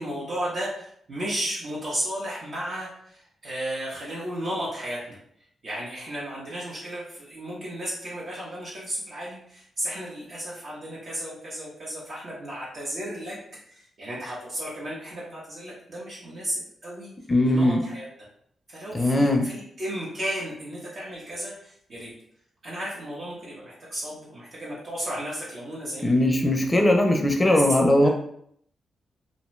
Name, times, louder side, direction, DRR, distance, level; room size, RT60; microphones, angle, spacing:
voice 1, 0.0-5.2 5.6-13.4 13.6-17.1 17.4-18.0 18.7-22.1 22.6-26.5 27.4-27.6 28.0-28.1, right 1 dB, 55° right, -6 dB, 0.8 m, -34 dB
voice 2, 17.3-17.8 18.9-19.5 26.0-28.1, left 1 dB, 20° left, 3 dB, 0.5 m, -20 dB
2.6 x 2.2 x 3.0 m, 0.67 s
cardioid pair, 85°, 0 cm